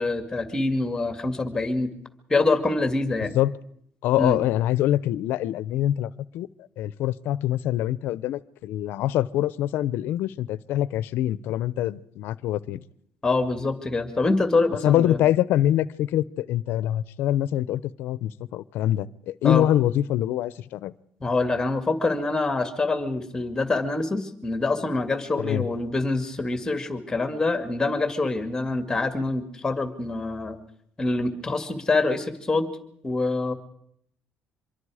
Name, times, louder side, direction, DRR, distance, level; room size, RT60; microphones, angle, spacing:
voice 1, 0.0-1.9 2.3-3.3 4.2-4.4 13.2-15.2 19.4-19.7 21.2-30.6 31.0-32.7 33.0-33.5, left 3 dB, 15° left, 8 dB, 2.2 m, -25 dB
voice 2, 4.0-6.5 6.8-12.8 14.8-21.0 25.4-25.7, left 12 dB, 75° left, 19 dB, 0.7 m, -24 dB
25.5 x 22.5 x 5.0 m, 0.70 s
cardioid pair, 125°, 4 cm